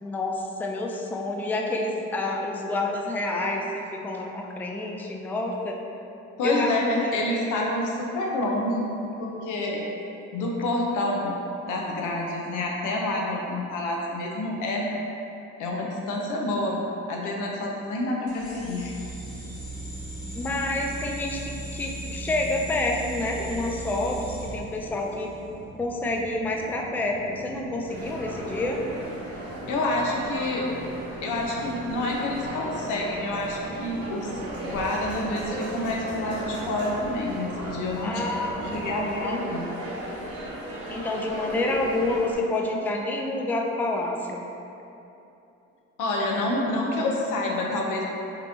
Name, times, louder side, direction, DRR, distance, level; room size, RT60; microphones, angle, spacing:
voice 1, 0.0-5.8 6.4-7.8 20.3-25.3 25.8-28.8 38.0-39.5 40.9-44.5, left 2 dB, 5° left, 0 dB, 0.3 m, -28 dB
voice 2, 6.4-8.9 9.2-9.8 10.3-11.4 11.6-14.9 15.6-16.8 17.1-18.9 29.7-30.7 31.2-34.3 34.6-38.2 38.6-39.7 46.0-48.0, left 2 dB, 85° left, -1 dB, 0.7 m, -28 dB
sound 1, 18.3-25.4, right 2 dB, 50° left, 1.1 m, -38 dB
sound 2, 19.2-39.1, right 1 dB, 40° right, 0.7 m, -43 dB
sound 3, 27.9-42.3, right 1 dB, 85° right, 1.5 m, -36 dB
5.3 x 2.9 x 2.7 m, 2.9 s
cardioid pair, 90°, 30 cm